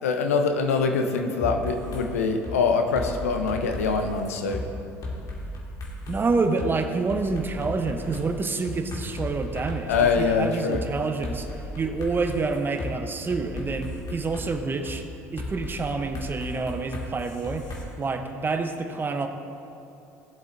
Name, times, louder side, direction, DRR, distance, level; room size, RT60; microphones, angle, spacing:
voice 1, 0.0-4.6 9.9-10.8, left 4 dB, 85° left, 5 dB, 0.8 m, -24 dB
sound 1, 1.4-2.0 2.4-2.6 2.9-4.6 5.0-6.2 6.6-6.7 7.1-10.3 10.7-10.8 11.2-12.9 13.3-14.5 14.9-15.0 15.4-17.8, left 1 dB, 50° left, 2.2 m, -35 dB
voice 2, 6.1-15.1 15.3-17.7 18.0-19.3, right 4 dB, 25° right, 7 dB, 0.9 m, -28 dB
16.5 x 7.9 x 2.7 m, 2.7 s
hypercardioid pair, 65°, 8 cm